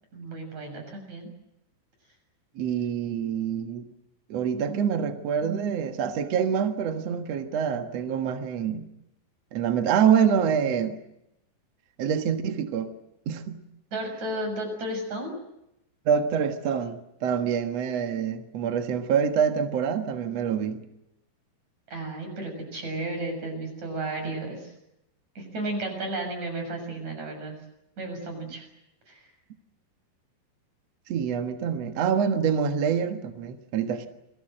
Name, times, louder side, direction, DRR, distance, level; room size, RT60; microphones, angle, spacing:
voice 1, 0.1-1.3 13.9-15.3 21.9-24.7 25.4-27.6 28.0-28.7 29.1-29.3, right 2 dB, 35° right, 5 dB, 8.1 m, -33 dB
voice 2, 2.5-3.9 4.3-8.8 9.5-11.0 12.0-12.9 13.2-13.6 16.0-20.8 31.1-34.1, right 7 dB, 75° right, 7 dB, 1.5 m, -26 dB
28.5 x 22.0 x 7.8 m, 0.84 s
omnidirectional pair, 5.5 m